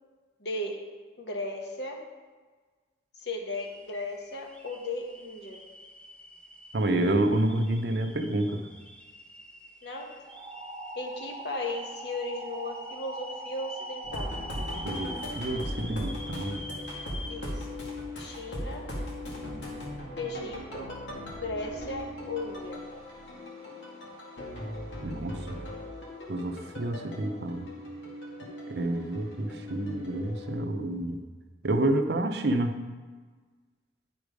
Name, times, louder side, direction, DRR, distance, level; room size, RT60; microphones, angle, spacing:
voice 1, 0.4-2.0 3.2-5.6 9.8-10.3 10.9-14.4 17.3-17.8 18.2-19.0 20.2-21.0 21.4-22.8, left 2 dB, 65° left, 2 dB, 1.2 m, -36 dB
sound 1, 3.5-17.4, left 1 dB, 5° left, 0.6 m, -46 dB
voice 2, 6.7-8.6 14.8-16.6 25.0-25.6 26.3-27.7 28.7-31.2 31.6-32.8, right 1 dB, 60° right, 7 dB, 0.6 m, -29 dB
sound 2, 10.3-15.3, right 2 dB, 25° right, 0.7 m, -42 dB
sound 3, 14.0-30.6, left 1 dB, 80° left, 2.1 m, -39 dB
9.8 x 4.8 x 5.1 m, 1.4 s
head